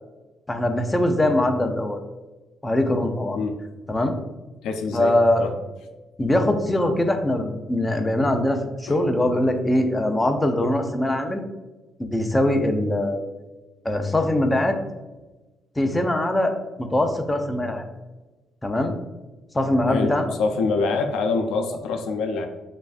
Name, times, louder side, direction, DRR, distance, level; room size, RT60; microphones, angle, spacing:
voice 1, 0.5-2.0 2.6-3.4 3.9-4.2 4.9-5.4 6.2-11.4 12.0-13.2 13.8-14.8 15.8-16.5 16.8-17.8 18.6-18.9 19.5-20.3, left 1 dB, 15° left, 5 dB, 0.6 m, -22 dB
voice 2, 4.6-5.5 8.9-9.0 19.9-22.5, left 4 dB, 85° left, 5 dB, 0.5 m, -25 dB
7.0 x 2.6 x 2.5 m, 1.2 s
cardioid pair, 90°, 0 cm